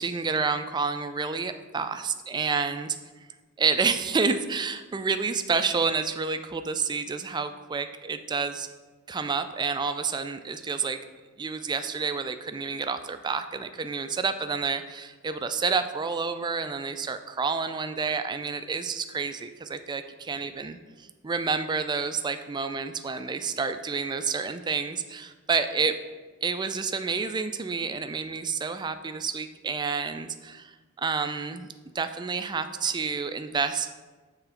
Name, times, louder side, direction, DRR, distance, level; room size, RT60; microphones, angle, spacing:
voice 1, 0.0-3.0 3.6-8.7 9.1-11.0 11.4-25.9 26.4-31.7 31.9-33.9, right 5 dB, 20° right, 9 dB, 0.3 m, -29 dB
6.9 x 3.8 x 5.7 m, 1.3 s
head